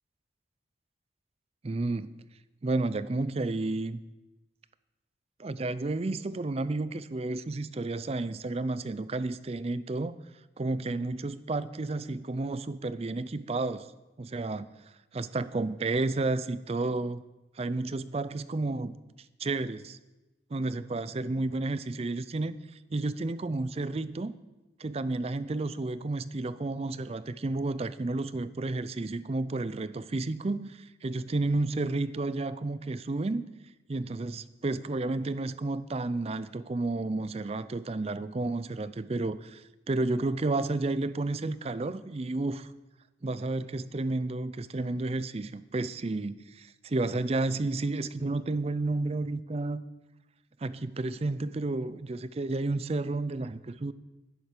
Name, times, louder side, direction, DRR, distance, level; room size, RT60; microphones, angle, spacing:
voice 1, 1.6-2.1 2.6-4.0 5.4-10.2 10.6-13.9 14.2-14.7 15.1-17.2 17.6-18.9 19.4-20.0 20.5-22.6 22.9-24.3 24.8-33.4 33.9-42.7 43.2-49.8 50.6-53.9, right 2 dB, 35° right, 0.4 m, -31 dB
10.5 x 10.0 x 6.6 m
head